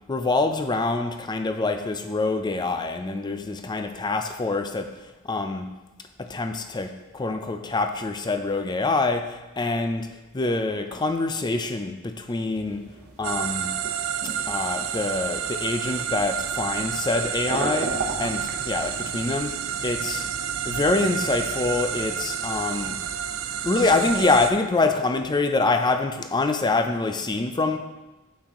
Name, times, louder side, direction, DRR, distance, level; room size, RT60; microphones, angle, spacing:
voice 1, 0.1-4.9 5.2-5.7 6.2-12.8 13.2-13.7 14.5-20.3 20.7-23.0 23.6-27.8, left 3 dB, 20° left, 7 dB, 0.4 m, -25 dB
sound 1, 12.4-24.0, right 2 dB, 50° right, 1.0 m, -39 dB
sound 2, 13.2-24.5, right 8 dB, 65° right, 0.4 m, -30 dB
6.5 x 5.9 x 3.6 m, 1.1 s
head